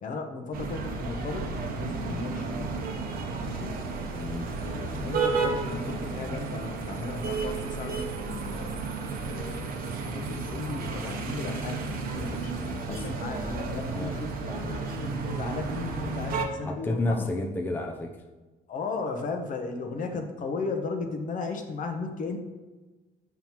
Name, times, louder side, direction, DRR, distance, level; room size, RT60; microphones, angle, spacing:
voice 1, 0.0-2.7 3.4-3.9 4.6-8.9 9.2-11.8 12.1-17.3 18.7-22.4, left 3 dB, 50° left, 4 dB, 1.0 m, -36 dB
sound 1, 0.5-16.5, right 4 dB, 60° right, 1.0 m, -32 dB
voice 2, 4.1-4.5 12.9-13.2 13.8-14.2 16.6-18.2, left 2 dB, 10° left, 1 dB, 0.6 m, -31 dB
7.3 x 5.5 x 3.0 m, 1.2 s
cardioid pair, 110°, 17 cm